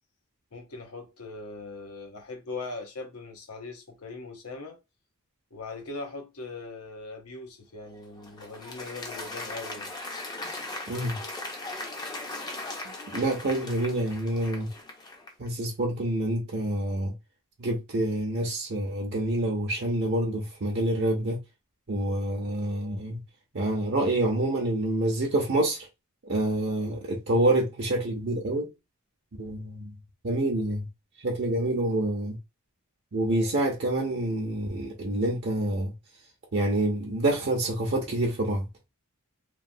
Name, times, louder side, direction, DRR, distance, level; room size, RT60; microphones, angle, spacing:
voice 1, 0.5-4.8 5.5-9.9, left 3 dB, 80° left, 0.9 m, -40 dB
Applause, 7.9-15.5, left 2 dB, 20° left, 0.5 m, -38 dB
voice 2, 10.9-11.2 12.8-14.7 15.4-17.1 17.6-21.4 21.9-23.2 23.5-25.9 26.2-28.7 29.4-29.9 30.2-30.9 31.2-32.4 33.1-35.9 36.5-38.6, right 1 dB, 50° right, 0.6 m, -27 dB
3.1 x 2.2 x 2.6 m
head